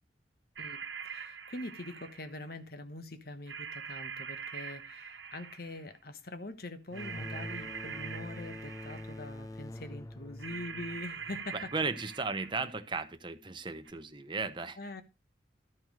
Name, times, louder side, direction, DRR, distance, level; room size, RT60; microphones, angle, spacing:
voice 1, 0.6-11.7 14.8-15.0, left 2 dB, 55° left, 1.3 m, -44 dB
sound 1, 0.6-2.5 3.5-5.9 6.9-9.4 10.4-12.8 13.9-14.0, right 6 dB, 80° right, 1.4 m, -44 dB
sound 2, 6.9-12.3, left 1 dB, 20° left, 0.5 m, -45 dB
voice 2, 11.5-14.8, right 4 dB, 25° right, 1.0 m, -35 dB
12.5 x 5.3 x 6.3 m
head